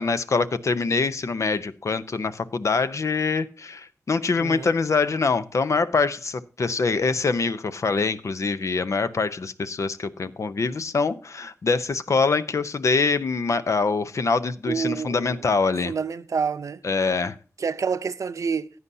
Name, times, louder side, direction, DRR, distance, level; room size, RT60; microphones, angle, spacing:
voice 1, 0.0-15.9 16.8-17.3, left 4 dB, 70° left, 0.7 m, -24 dB
voice 2, 4.4-4.7 14.7-15.5 15.8-16.8 17.6-18.7, right 6 dB, 80° right, 0.6 m, -28 dB
15.5 x 9.6 x 2.7 m
cardioid pair, 55°, 5 cm